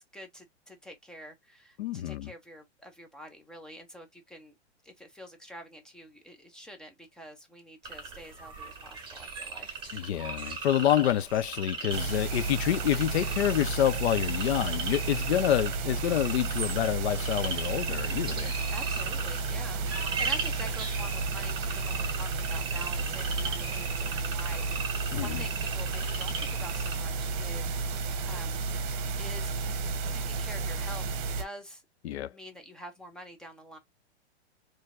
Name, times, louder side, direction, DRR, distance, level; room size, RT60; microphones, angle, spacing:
voice 1, 0.0-4.5 4.8-10.1 18.7-28.6 29.2-29.5 30.1-31.1 31.4-31.8 32.3-33.8, equal, ahead, 0.5 m, -47 dB
voice 2, 1.8-2.3 9.9-18.5 25.1-25.4 32.0-32.3, left 11 dB, 70° left, 0.6 m, -28 dB
sound 1, 7.8-27.0, right 4 dB, 15° right, 1.7 m, -38 dB
sound 2, 11.9-31.4, right 4 dB, 45° right, 1.0 m, -32 dB
4.5 x 3.1 x 2.4 m
hypercardioid pair, 150°, 34 cm